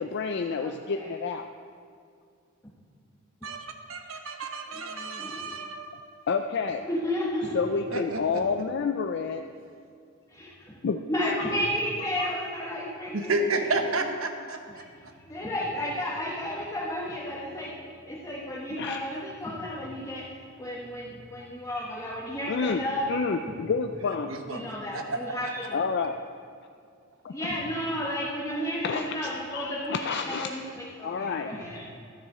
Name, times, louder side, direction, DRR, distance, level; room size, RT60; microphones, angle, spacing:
voice 1, 0.0-1.5 6.3-6.8 7.5-9.4 10.8-11.0 11.4-11.6 12.2-12.3 18.8-19.0 22.5-24.3 25.7-26.1 27.2-27.3 28.8-30.5 31.0-31.5, left 5 dB, 55° left, 6 dB, 0.4 m, -29 dB
voice 2, 0.6-1.1 4.8-5.5 6.8-7.6 10.3-10.5 11.1-13.7 14.8-14.9 15.3-17.7 18.1-20.2 20.6-23.0 23.6-23.7 24.5-25.8 27.3-31.8, equal, 15° left, -5 dB, 1.1 m, -32 dB
voice 3, 3.4-5.9 7.9-8.4 13.1-15.1 24.1-24.6 24.9-25.5, right 2 dB, 70° right, 5 dB, 1.0 m, -32 dB
13.0 x 7.1 x 4.8 m, 2.3 s
head